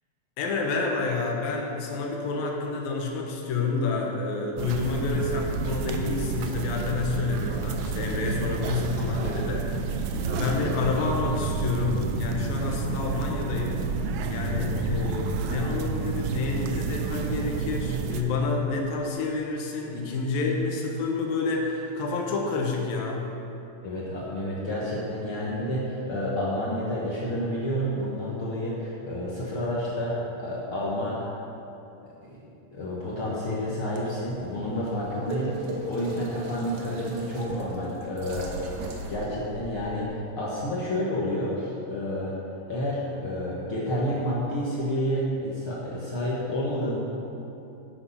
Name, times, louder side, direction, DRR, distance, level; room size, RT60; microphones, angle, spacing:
voice 1, 0.4-9.9 10.2-14.0 14.3-23.4, left 4 dB, 80° left, 0 dB, 3.0 m, -29 dB
sound 1, 4.6-18.2, right 5 dB, 90° right, 1.6 m, -30 dB
voice 2, 23.8-31.2 32.3-32.4 32.7-38.5 38.8-42.3 42.7-47.0, equal, 55° left, -6 dB, 1.6 m, -30 dB
sound 2, 33.9-40.0, right 2 dB, 65° right, 2.1 m, -39 dB
9.0 x 8.6 x 5.6 m, 2.8 s
omnidirectional pair, 4.1 m